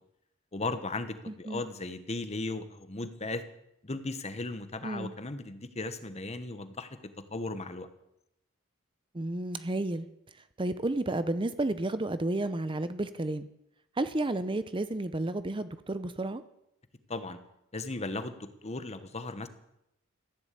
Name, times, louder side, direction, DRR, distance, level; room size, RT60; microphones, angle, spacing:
voice 1, 0.5-3.4 3.8-6.9 7.3-7.9 17.1-17.4 17.7-19.5, left 2 dB, 30° left, 11 dB, 1.2 m, -36 dB
voice 2, 1.3-1.6 4.8-5.1 9.1-10.1 10.6-13.5 14.0-16.4, right 2 dB, 25° right, 12 dB, 0.7 m, -31 dB
15.0 x 10.5 x 8.4 m, 0.84 s
head